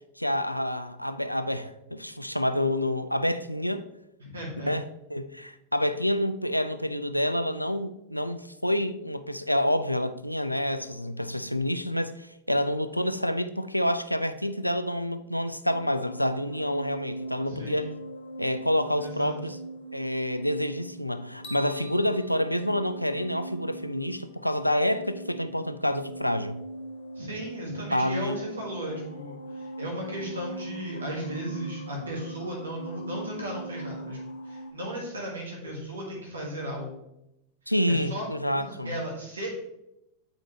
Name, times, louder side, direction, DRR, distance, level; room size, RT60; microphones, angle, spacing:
voice 1, 0.2-3.8 4.7-4.8 5.1-17.9 18.4-19.6 19.9-26.6 27.9-28.4 37.7-38.9, left 1 dB, 90° left, 0.4 m, -28 dB
voice 2, 4.2-4.7 17.5-17.9 19.0-19.4 27.1-34.2 34.4-37.0 37.9-38.3 38.6-39.5, right 1 dB, 75° right, 1.6 m, -36 dB
sound 1, 15.7-34.7, right 1 dB, 70° left, 0.8 m, -40 dB
sound 2, 21.4-23.7, equal, 50° left, 1.4 m, -46 dB
8.0 x 5.1 x 3.1 m
figure-of-eight pair, 90°, 0 cm